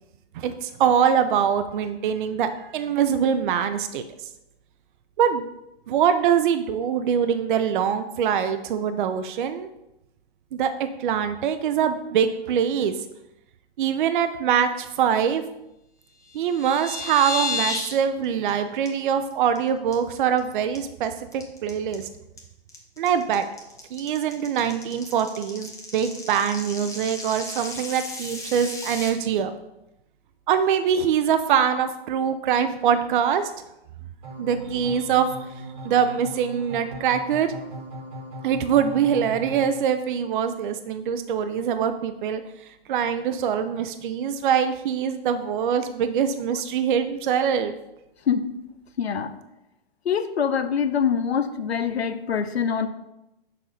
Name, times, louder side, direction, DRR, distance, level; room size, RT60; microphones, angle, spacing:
voice 1, 0.3-4.0 5.2-5.4 5.9-9.7 10.5-12.9 13.8-15.4 16.3-22.1 23.0-23.4 23.9-29.5 30.5-33.5 34.4-35.3 35.8-37.5 38.4-42.4 42.9-47.7, right 8 dB, 55° right, 9 dB, 0.5 m, -23 dB
sound 1, 16.3-17.9 18.2-18.5 18.8-18.9 19.3-19.6 19.9-20.4 20.7-29.1, left 3 dB, 10° left, 0.8 m, -33 dB
sound 2, 34.2-39.7, right 1 dB, 20° right, 1.2 m, -38 dB
voice 2, 49.0-49.3 50.1-52.9, left 7 dB, 90° left, 10 dB, 0.7 m, -24 dB
6.5 x 2.7 x 5.6 m, 0.89 s
hypercardioid pair, 130°, 31 cm